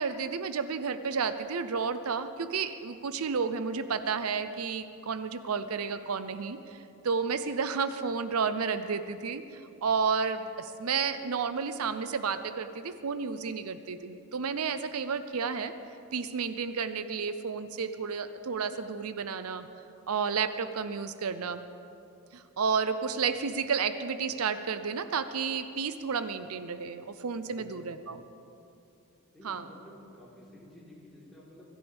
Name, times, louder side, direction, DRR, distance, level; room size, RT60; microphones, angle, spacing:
voice 1, 0.0-15.7 16.1-19.7 20.1-21.6 22.3-28.2 29.4-29.7, right 5 dB, 80° right, 11 dB, 0.6 m, -31 dB
voice 2, 27.4-27.9 29.3-31.6, left 1 dB, ahead, -8 dB, 3.9 m, -51 dB
23.5 x 14.5 x 3.5 m, 2.7 s
head